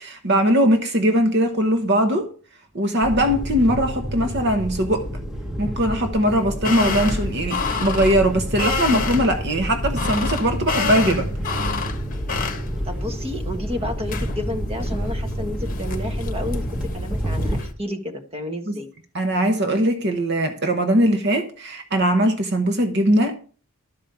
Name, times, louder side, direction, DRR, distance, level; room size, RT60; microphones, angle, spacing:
voice 1, 0.0-2.3 2.7-5.1 5.6-11.3 18.7-18.8 19.1-23.3, equal, 50° right, 1.0 m, -20 dB
sound 1, 3.0-17.6, equal, 5° right, 1.2 m, -29 dB
sound 2, 6.3-17.7, left 3 dB, 35° left, 1.2 m, -29 dB
voice 2, 12.8-18.9, left 1 dB, 25° right, 1.3 m, -31 dB
12.0 x 5.0 x 7.0 m
head